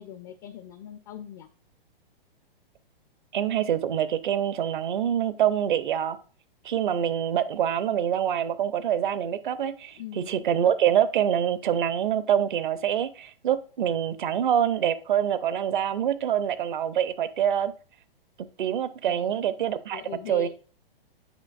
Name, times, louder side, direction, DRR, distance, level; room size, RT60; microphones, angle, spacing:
voice 1, 0.0-1.5 10.0-10.4 19.1-19.4 19.9-20.5, left 9 dB, 25° left, 0.4 m, -41 dB
voice 2, 3.3-6.2 6.6-17.7 18.4-20.0 20.3-20.5, right 9 dB, 60° right, 0.7 m, -25 dB
8.1 x 5.0 x 2.4 m
figure-of-eight pair, 120°, 29 cm